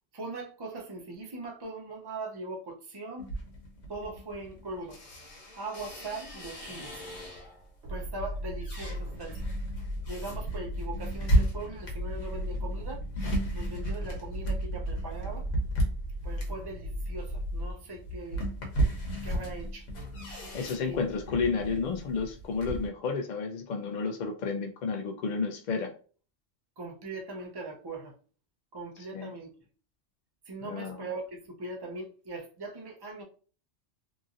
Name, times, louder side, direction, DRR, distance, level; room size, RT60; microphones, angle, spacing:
voice 1, 0.1-3.3 3.9-5.0 5.6-7.0 7.9-9.4 10.1-13.0 13.5-15.5 16.2-18.5 19.2-19.9 20.8-21.0 26.8-28.1 28.7-29.7 30.5-33.2, right 2 dB, 35° right, 0.4 m, -40 dB
sound 1, 3.2-7.7 8.2-22.9, right 1 dB, 90° left, 1.2 m, -34 dB
sound 2, 7.8-17.7, equal, 90° right, 1.1 m, -36 dB
voice 2, 20.5-25.9 29.1-29.3 30.6-31.0, left 5 dB, 70° left, 0.4 m, -31 dB
2.9 x 2.6 x 2.5 m
omnidirectional pair, 1.3 m